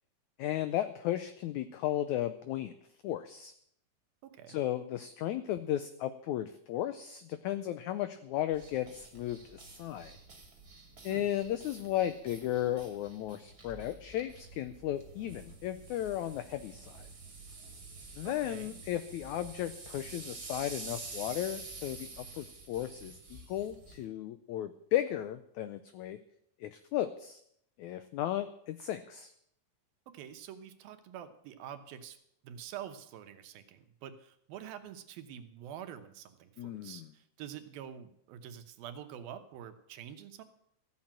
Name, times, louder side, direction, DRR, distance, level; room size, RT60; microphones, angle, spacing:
voice 1, 0.4-2.7 3.0-3.5 4.5-10.2 11.0-17.1 18.2-26.2 26.6-27.4 27.8-29.3 36.6-37.0, left 12 dB, 90° left, 12 dB, 1.6 m, -35 dB
voice 2, 4.2-4.6 11.1-11.3 18.2-18.8 30.1-32.2 32.4-40.4, right 9 dB, 85° right, 9 dB, 2.9 m, -47 dB
sound 1, 8.5-24.0, right 3 dB, 30° right, 2.6 m, -49 dB
14.5 x 7.5 x 8.9 m, 0.71 s
omnidirectional pair, 4.1 m